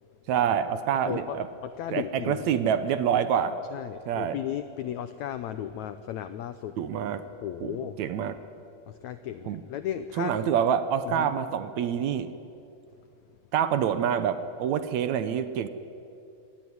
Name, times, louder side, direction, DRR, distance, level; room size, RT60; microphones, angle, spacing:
voice 1, 0.3-1.5 1.9-3.6 4.1-4.4 6.8-7.2 7.6-8.4 9.5-9.6 10.2-12.3 13.5-15.7, right 8 dB, 70° right, 12 dB, 1.8 m, -26 dB
voice 2, 1.0-1.4 1.6-2.5 3.7-6.8 7.4-8.0 8.9-10.4 11.1-11.3, left 11 dB, 85° left, 11 dB, 1.6 m, -35 dB
24.5 x 18.5 x 9.5 m, 2.6 s
omnidirectional pair, 4.2 m